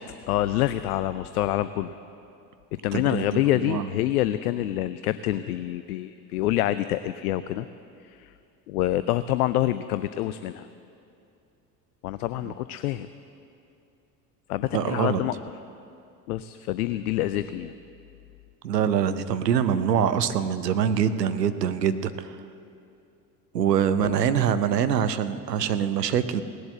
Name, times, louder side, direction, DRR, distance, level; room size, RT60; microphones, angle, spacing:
voice 1, 0.3-1.9 2.8-7.7 8.0-8.3 8.7-10.7 12.0-13.1 14.5-15.3 16.3-17.7 24.0-24.1, left 14 dB, 65° left, 14 dB, 0.6 m, -26 dB
voice 2, 2.9-3.9 12.4-12.5 14.7-15.2 18.6-22.4 23.5-26.4, right 8 dB, 80° right, 11 dB, 0.8 m, -24 dB
18.0 x 7.8 x 7.8 m, 2.6 s
figure-of-eight pair, 65°, 48 cm